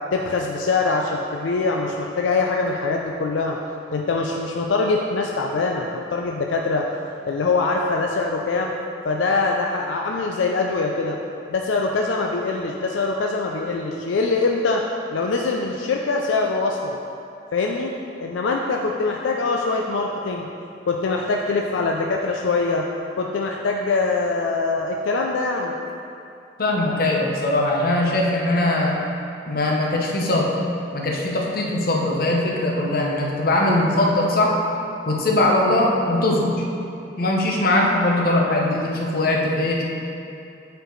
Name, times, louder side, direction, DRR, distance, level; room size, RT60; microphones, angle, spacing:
voice 1, 0.1-3.6 3.9-6.9 7.2-8.7 9.0-11.2 11.5-14.8 15.1-17.0 17.5-17.9 18.2-20.5 20.9-22.9 23.2-25.7, left 3 dB, 80° left, 1 dB, 0.4 m, -23 dB
voice 2, 26.6-29.0 29.5-30.5 30.9-34.6 35.1-36.5 37.2-39.9, left 1 dB, 50° left, -1 dB, 0.9 m, -21 dB
7.7 x 4.6 x 3.9 m, 2.6 s
head